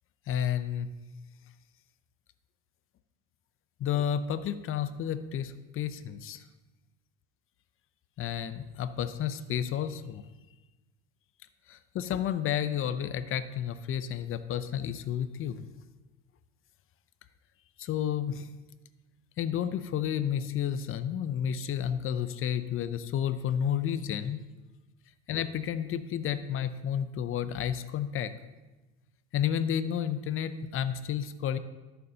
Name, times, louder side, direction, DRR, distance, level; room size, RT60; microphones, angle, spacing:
voice 1, 0.3-0.9 3.8-6.4 8.2-10.2 11.7-15.7 17.8-18.5 19.4-24.4 25.3-28.3 29.3-31.6, left 9 dB, 35° left, 13 dB, 0.5 m, -31 dB
12.5 x 6.8 x 2.8 m, 1.1 s
supercardioid pair, 100°, 36 cm